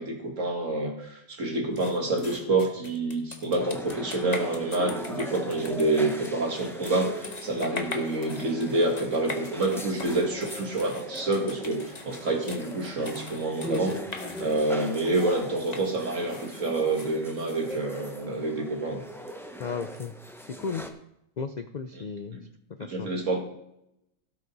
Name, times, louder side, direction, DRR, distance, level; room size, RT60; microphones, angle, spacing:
voice 1, 0.0-19.0 21.9-22.0 22.3-22.4 22.8-23.4, right 2 dB, 65° right, 1 dB, 2.4 m, -28 dB
sound 1, 1.8-18.1, left 3 dB, 30° left, 1.2 m, -42 dB
sound 2, 3.5-20.9, equal, ahead, 0.6 m, -40 dB
voice 2, 19.6-20.1 20.4-20.8 21.4-22.4 22.8-23.1, left 5 dB, 65° left, 9 dB, 0.4 m, -34 dB
17.0 x 5.7 x 4.0 m, 0.80 s
omnidirectional pair, 1.5 m